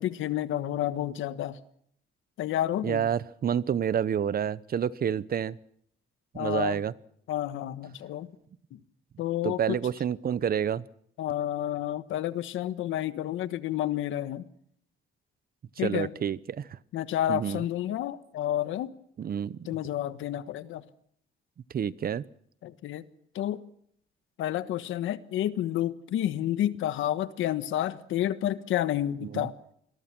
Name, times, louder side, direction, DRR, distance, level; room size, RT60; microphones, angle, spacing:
voice 1, 0.0-1.6 2.4-3.1 6.3-6.8 7.3-8.3 8.7-8.8 9.2-9.8 11.2-14.4 15.8-16.1 16.9-18.9 19.7-20.8 22.6-23.0 23.3-23.6 24.4-29.6, left 12 dB, 85° left, 13 dB, 1.4 m, -30 dB
voice 2, 2.8-5.6 6.3-6.9 9.4-10.8 15.8-16.8 17.3-17.6 19.2-19.6 21.7-22.2 29.2-29.5, right 8 dB, 50° right, 19 dB, 0.9 m, -29 dB
27.0 x 22.0 x 6.1 m, 0.69 s
cardioid pair, 90°, 20 cm